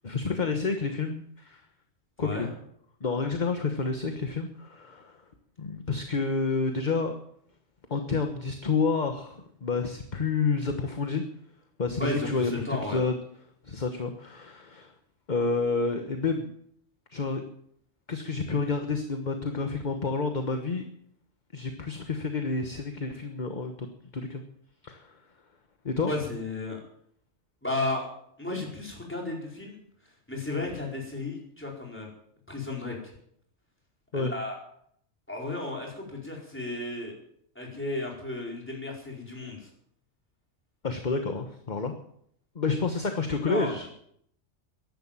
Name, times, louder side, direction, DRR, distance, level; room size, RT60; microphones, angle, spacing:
voice 1, 0.0-1.6 2.2-2.5 3.0-5.2 5.6-7.1 7.9-11.2 11.8-12.5 12.9-13.1 13.6-14.9 15.3-16.5 17.1-17.4 18.1-20.8 21.5-23.9 24.1-24.4 24.8-25.2 25.8-26.1 34.1-34.3 40.8-41.9 42.5-43.9, left 4 dB, 35° left, 6 dB, 1.3 m, -29 dB
voice 2, 12.0-13.0 26.1-26.8 27.6-28.1 28.4-29.8 30.3-32.1 32.5-33.1 34.1-34.6 35.3-37.2 37.5-39.7 43.5-43.9, left 2 dB, 10° left, -1 dB, 4.7 m, -33 dB
14.5 x 11.5 x 7.4 m, 0.69 s
omnidirectional pair, 1.3 m